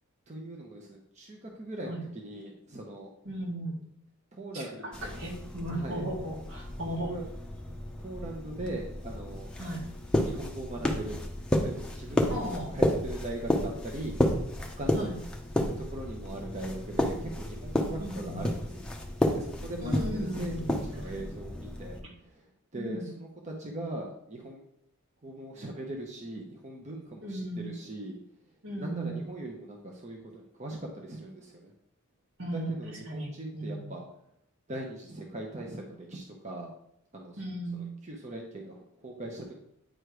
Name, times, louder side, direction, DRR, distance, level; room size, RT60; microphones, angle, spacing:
voice 1, 0.3-3.1 4.3-5.2 5.7-6.1 7.0-7.2 8.0-9.5 10.2-11.2 11.6-14.2 14.8-15.1 15.8-18.9 19.3-20.5 20.8-22.5 22.7-24.6 25.2-28.2 28.8-31.7 32.5-34.0 34.7-36.7 37.1-37.4 37.7-39.5, right 1 dB, 30° right, 0 dB, 0.8 m, -40 dB
voice 2, 3.2-3.8 4.5-7.2 9.6-9.9 12.3-12.7 14.9-15.2 18.0-18.4 19.8-21.3 22.7-23.1 27.2-27.7 28.6-29.2 32.4-32.8 33.1-33.9 37.4-37.9, right 1 dB, 70° right, -2 dB, 1.9 m, -36 dB
sound 1, 4.9-22.0, left 1 dB, 5° left, 0.7 m, -32 dB
9.0 x 3.2 x 4.8 m, 0.74 s
head